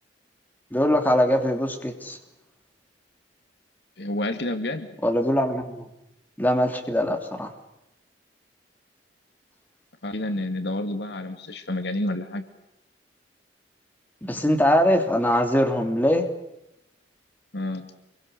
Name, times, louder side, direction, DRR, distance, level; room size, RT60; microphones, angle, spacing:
voice 1, 0.7-2.2 5.0-5.9 6.4-7.5 14.2-16.3, equal, 10° left, 4 dB, 3.1 m, -22 dB
voice 2, 4.0-4.9 10.0-12.4 17.5-17.9, left 1 dB, 65° left, 8 dB, 2.2 m, -29 dB
27.0 x 23.5 x 6.7 m, 0.88 s
head